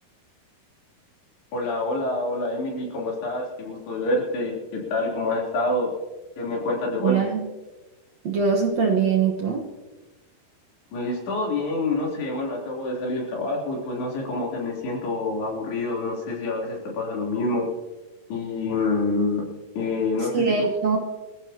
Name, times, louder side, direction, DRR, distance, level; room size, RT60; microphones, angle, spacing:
voice 1, 1.5-5.9 6.4-7.2 10.9-17.7 18.3-19.4 19.8-20.7, left 2 dB, 85° left, -3 dB, 5.6 m, -27 dB
voice 2, 7.0-7.5 8.2-9.7 20.2-21.0, right 5 dB, 55° right, 0 dB, 2.0 m, -22 dB
25.5 x 15.0 x 2.9 m, 1.2 s
omnidirectional pair, 4.5 m